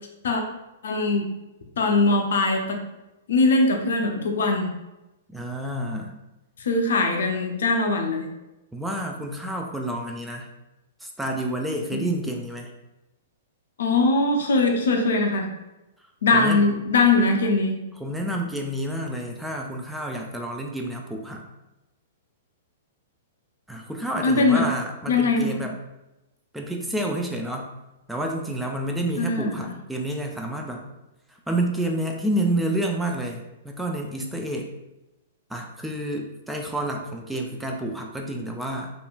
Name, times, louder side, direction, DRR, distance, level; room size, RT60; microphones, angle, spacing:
voice 1, 0.8-1.2 1.8-2.8 3.3-4.7 6.6-8.3 11.9-12.0 13.8-15.5 16.2-17.8 24.2-24.6 25.1-25.5 29.2-29.6, left 3 dB, 65° left, 3 dB, 0.4 m, -21 dB
voice 2, 5.3-6.1 8.7-10.5 11.0-12.7 16.3-16.6 18.0-21.4 23.7-25.8 26.5-27.7 28.1-30.9 31.3-34.7 35.5-38.9, right 1 dB, 5° right, 1 dB, 0.3 m, -29 dB
2.8 x 2.5 x 2.3 m, 0.96 s
figure-of-eight pair, 110°, 0 cm